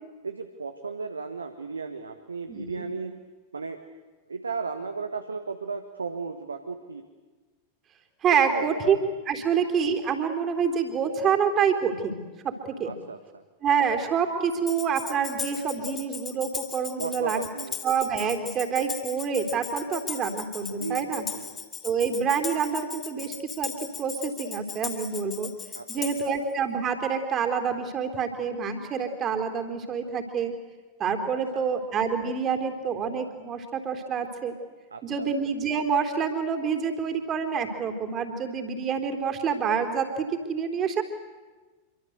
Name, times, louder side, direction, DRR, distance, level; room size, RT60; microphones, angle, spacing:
voice 1, 0.2-3.2 3.5-3.8 4.3-7.0 8.4-8.7 9.4-9.5 12.8-13.4 17.0-17.8 20.8-21.6 25.7-26.3 31.5-31.7 34.9-35.3, right 4 dB, 75° right, 8 dB, 1.6 m, -35 dB
voice 2, 2.5-2.8 8.2-9.0 9.3-12.2 12.4-12.9 13.6-17.5 17.8-21.3 21.8-23.7 24.0-25.5 25.9-30.5 31.0-34.6 35.0-41.0, right 6 dB, 30° right, 5 dB, 3.9 m, -27 dB
Tambourine, 14.7-26.4, left 6 dB, 20° left, 2.9 m, -38 dB
27.0 x 24.5 x 8.2 m, 1.3 s
figure-of-eight pair, 90°, 0 cm